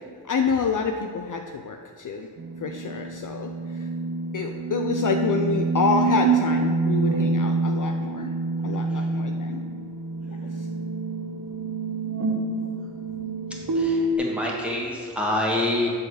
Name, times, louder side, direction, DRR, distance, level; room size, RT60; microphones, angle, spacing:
voice 1, 0.2-2.3 2.6-3.9 4.3-8.3 8.6-9.6 10.4-10.7, left 5 dB, 50° left, 4 dB, 0.6 m, -28 dB
sound 1, 2.4-14.2, right 3 dB, 50° right, 1.0 m, -26 dB
voice 2, 13.7-15.9, left 1 dB, 5° right, -3 dB, 1.9 m, -26 dB
7.4 x 4.1 x 6.4 m, 2.1 s
cardioid pair, 65°, 41 cm